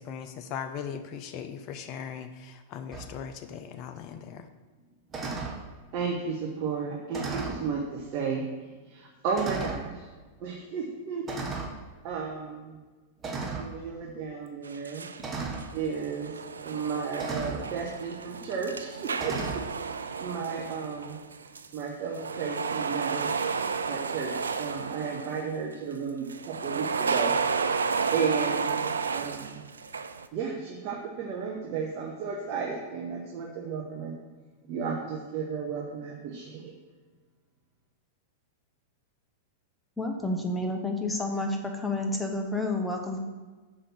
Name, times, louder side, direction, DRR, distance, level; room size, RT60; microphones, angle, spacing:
voice 1, 0.0-4.5, left 7 dB, 45° left, 8 dB, 0.5 m, -39 dB
sound 1, 2.9-3.1 5.1-5.6 7.1-7.7 8.5-8.6 9.3-9.9 11.3-11.8 13.2-13.7 15.2-15.7 17.2-17.6 19.2-19.6, right 4 dB, 25° right, 1.1 m, -34 dB
voice 2, 5.9-8.4 8.9-10.1 10.4-11.2 12.0-12.8 13.4-15.1 15.7-16.3 16.6-19.3 20.2-21.2 21.7-23.3 23.9-27.3 28.1-29.6 30.3-34.2 34.6-36.7, right 5 dB, 45° right, -1 dB, 1.0 m, -33 dB
sound 2, 14.6-15.2 15.5-21.8 22.1-25.5 26.3-30.3, right 5 dB, 85° right, 0.4 m, -32 dB
voice 3, 40.0-43.2, left 2 dB, 5° left, 2 dB, 0.9 m, -30 dB
6.1 x 4.9 x 5.9 m, 1.3 s
hypercardioid pair, 100°, 0 cm